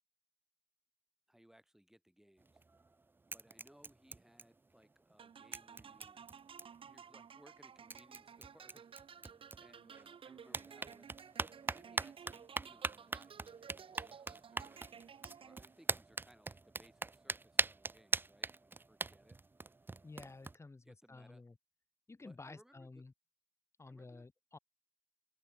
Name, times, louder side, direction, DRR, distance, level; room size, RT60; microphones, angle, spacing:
voice 1, 1.3-2.6 3.3-6.2 6.8-9.3 9.6-11.1 11.6-14.8 15.4-19.4 20.8-21.4 22.2-23.0 23.9-24.3, equal, 5° right, 2.7 m, -65 dB
sound 1, 2.4-2.9 3.3-4.8 5.1-5.2 5.5-6.9 7.6-7.7 7.9-10.0 10.4-20.6, right 3 dB, 25° right, 0.3 m, -41 dB
sound 2, 5.2-15.9, right 7 dB, 80° right, 0.9 m, -55 dB
voice 2, 20.0-21.6 22.1-23.1 23.8-24.6, left 3 dB, 30° left, 1.0 m, -52 dB
open air
wide cardioid pair, 80°, 9 cm